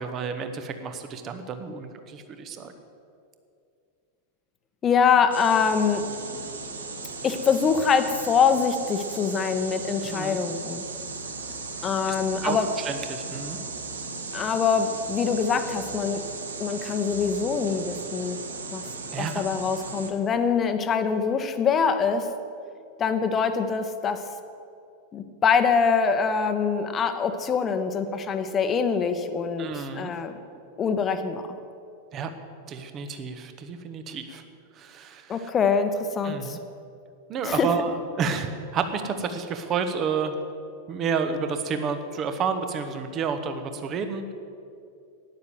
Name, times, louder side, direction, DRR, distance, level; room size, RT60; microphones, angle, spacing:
voice 1, 0.0-2.7 10.1-10.4 12.1-12.2 12.4-13.6 19.1-19.4 29.6-30.1 32.1-32.3 32.7-34.4 34.7-35.5 36.2-36.6 37.3-40.3 40.9-44.3, right 5 dB, 30° right, 8 dB, 1.2 m, -30 dB
voice 2, 4.8-6.1 7.2-10.9 11.8-12.7 14.3-16.2 16.6-18.4 18.7-18.9 19.2-22.3 23.0-24.2 25.1-30.4 30.8-31.6 35.3-36.6 37.4-37.7, left 6 dB, 25° left, 9 dB, 1.0 m, -24 dB
sound 1, 5.3-20.1, right 4 dB, 70° right, 1.2 m, -36 dB
12.0 x 9.8 x 7.8 m, 2.5 s
figure-of-eight pair, 90°, 0 cm